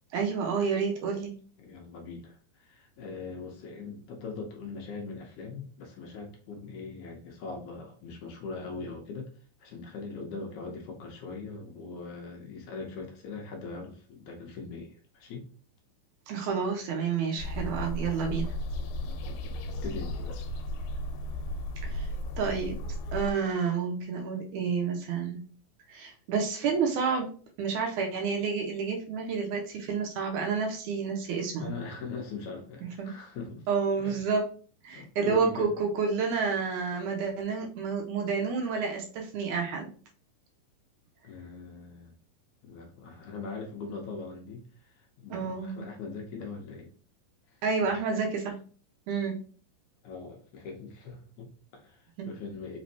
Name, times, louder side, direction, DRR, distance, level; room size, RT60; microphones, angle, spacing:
voice 1, 0.1-1.4 16.3-18.5 21.8-22.1 22.4-22.8 23.1-25.4 25.9-27.3 27.6-31.7 32.8-33.1 33.7-34.5 34.8-39.9 45.3-45.9 47.6-48.6 49.1-49.4 52.2-52.3, right 5 dB, 80° right, 1 dB, 1.9 m, -29 dB
voice 2, 1.6-9.3 9.6-15.4 19.0-20.5 31.6-33.7 34.0-34.2 34.9-35.7 41.2-42.1 42.6-46.9 47.8-48.0 50.0-52.8, left 4 dB, 75° left, 1 dB, 1.8 m, -41 dB
sound 1, 17.4-23.3, left 1 dB, 90° left, 2.4 m, -35 dB
5.2 x 3.1 x 2.7 m, 0.41 s
omnidirectional pair, 4.1 m